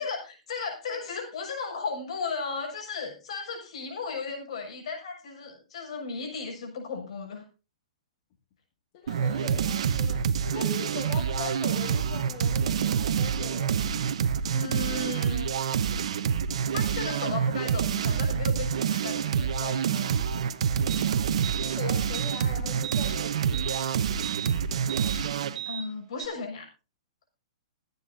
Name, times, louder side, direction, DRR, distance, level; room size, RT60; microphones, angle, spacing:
voice 1, 0.0-7.4 14.5-15.7 16.7-20.1 24.6-24.9 25.6-26.7, left 4 dB, 65° left, 0 dB, 6.6 m, -35 dB
voice 2, 8.9-14.0 21.5-23.7, left 6 dB, 45° left, 2 dB, 2.2 m, -40 dB
sound 1, 9.1-25.6, right 7 dB, 65° right, 1.0 m, -27 dB
sound 2, 20.9-21.0 21.4-21.7 22.1-22.4 22.8-23.1 23.5-23.8 24.2-24.5 24.9-25.2 25.6-25.8 26.2-26.3, right 11 dB, 20° right, 2.7 m, -36 dB
23.5 x 9.5 x 2.7 m, 0.32 s
hypercardioid pair, 125°, 3 cm